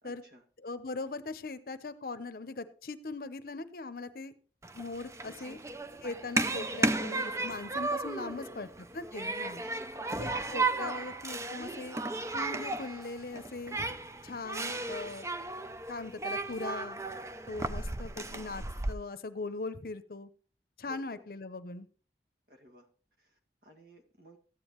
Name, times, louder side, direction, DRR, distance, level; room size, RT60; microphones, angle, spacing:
voice 1, 0.0-0.4 5.2-5.7 8.2-8.6 9.5-10.7 20.9-21.2 22.5-22.9 23.2-24.4, equal, 55° right, 3 dB, 1.9 m, -56 dB
voice 2, 0.6-4.3 4.7-5.6 6.0-8.7 8.9-9.6 10.2-12.0 12.3-13.8 14.2-15.3 15.9-17.0 17.5-20.3 20.8-21.9, left 3 dB, 55° left, 12 dB, 0.7 m, -40 dB
Human group actions, 4.6-18.9, right 2 dB, 15° right, 0.4 m, -35 dB
13.5 x 9.2 x 3.1 m, 0.39 s
head